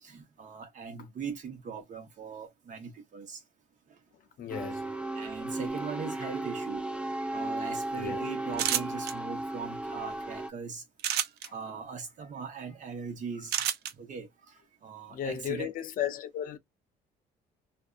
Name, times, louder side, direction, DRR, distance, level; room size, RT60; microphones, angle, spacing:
voice 1, 0.0-3.4 5.1-6.8 7.3-10.8 11.1-11.2 11.5-13.5 13.9-14.5 14.8-15.7, right 6 dB, 50° right, 0.9 m, -40 dB
voice 2, 4.4-4.8 8.0-8.2 11.4-11.5 15.1-16.6, left 9 dB, 55° left, 0.6 m, -34 dB
sound 1, 4.5-10.5, right 2 dB, 5° right, 0.4 m, -35 dB
sound 2, 8.5-9.1 11.0-11.5 13.5-13.9, right 11 dB, 75° right, 0.4 m, -28 dB
2.6 x 2.1 x 2.3 m
cardioid pair, 110°, 17 cm